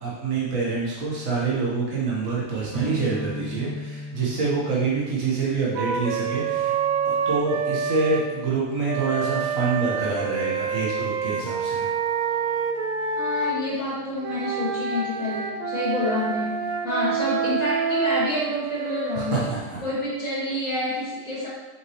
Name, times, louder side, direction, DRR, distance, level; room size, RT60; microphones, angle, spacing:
voice 1, 0.0-6.7 7.0-11.9 19.1-19.8, right 4 dB, 70° right, -6 dB, 1.7 m, -26 dB
sound 1, 2.7-10.3, left 1 dB, 15° right, 1.3 m, -39 dB
Wind instrument woodwind instrument, 5.8-8.3 8.9-13.6 14.2-19.6, right 6 dB, 85° right, 1.1 m, -27 dB
voice 2, 13.1-19.4 19.8-21.5, left 2 dB, 70° left, -9 dB, 2.5 m, -28 dB
6.3 x 6.2 x 3.1 m, 1.2 s
omnidirectional pair, 1.4 m